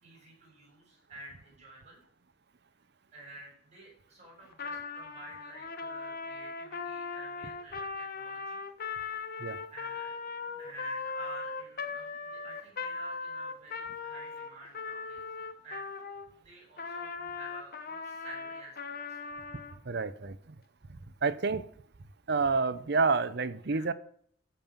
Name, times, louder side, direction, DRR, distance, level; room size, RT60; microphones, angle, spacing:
voice 1, 0.0-2.0 3.1-8.6 9.7-10.1 10.6-15.2 15.6-15.9 16.4-18.8 19.1-19.2 23.7-23.9, right 1 dB, 40° right, 5.7 m, -50 dB
Trumpet, 4.5-16.3 16.8-19.8, left 4 dB, 50° left, 0.9 m, -39 dB
voice 2, 19.8-20.5 20.9-21.7 22.3-23.9, right 4 dB, 60° right, 0.7 m, -29 dB
14.5 x 5.4 x 7.2 m
head